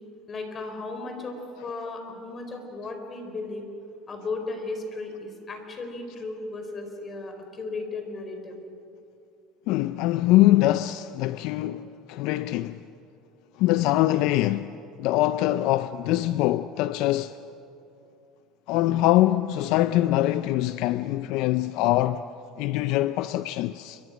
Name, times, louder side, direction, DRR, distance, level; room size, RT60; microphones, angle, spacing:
voice 1, 0.3-3.7 4.1-8.6, left 3 dB, 30° left, 4.5 m, -35 dB
voice 2, 9.7-12.8 13.6-14.7 15.0-17.4 18.7-22.2 22.6-24.0, left 15 dB, 70° left, 0.5 m, -23 dB
29.5 x 24.0 x 6.2 m
cardioid pair, 125°, 0 cm